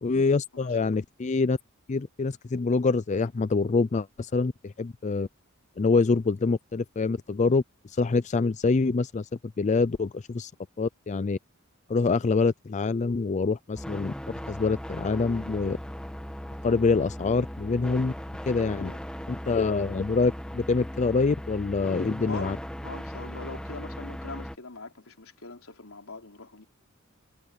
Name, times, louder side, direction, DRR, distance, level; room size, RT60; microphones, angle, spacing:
voice 1, 0.0-1.6 1.9-5.3 5.8-9.3 9.6-10.5 10.8-11.4 11.9-14.1 14.5-15.8 16.6-18.1 18.5-18.9 19.3-22.6, left 4 dB, 35° left, 0.4 m, -25 dB
voice 2, 0.5-1.0 18.7-19.0 22.3-22.6 22.8-26.6, left 3 dB, 85° left, 4.1 m, -42 dB
sound 1, 13.7-24.6, equal, 5° left, 1.7 m, -38 dB
head